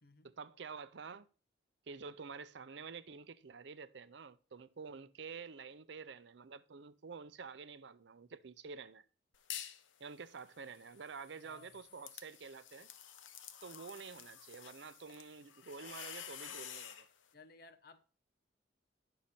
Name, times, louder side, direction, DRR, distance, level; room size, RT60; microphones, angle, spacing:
voice 1, 0.2-1.3 1.9-9.0 10.0-12.9 13.6-17.1, right 5 dB, 65° right, 0.5 m, -49 dB
sound 1, 9.3-9.9 10.3-17.1, left 9 dB, 90° left, 0.8 m, -50 dB
voice 2, 11.4-11.8 17.3-18.1, left 3 dB, 55° left, 0.8 m, -59 dB
9.9 x 6.4 x 4.2 m
head